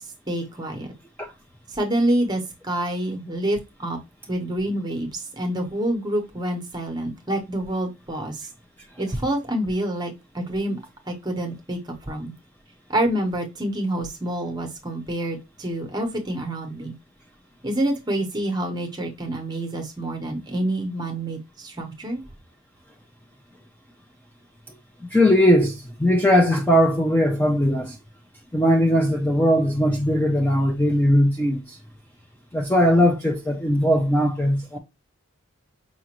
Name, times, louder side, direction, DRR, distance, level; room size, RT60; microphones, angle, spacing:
voice 1, 0.3-0.9 1.7-4.0 4.3-8.5 9.0-10.8 11.1-12.3 12.9-16.9 17.6-22.2, right 1 dB, 20° right, 0.8 m, -27 dB
voice 2, 25.1-28.0 28.5-31.8 32.5-34.8, equal, 10° left, 0.4 m, -19 dB
4.9 x 2.5 x 2.9 m
head